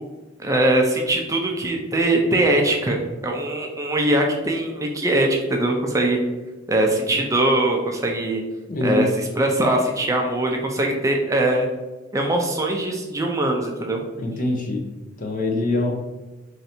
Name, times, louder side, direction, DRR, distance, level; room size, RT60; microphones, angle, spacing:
voice 1, 0.4-3.0 3.2-6.2 6.7-8.4 8.8-9.1 9.4-11.7 12.1-14.0, right 1 dB, 15° right, 1 dB, 0.4 m, -21 dB
voice 2, 8.7-9.0 14.2-14.8 15.2-15.9, left 2 dB, 45° left, 1 dB, 0.6 m, -23 dB
3.2 x 2.6 x 4.2 m, 1.1 s
head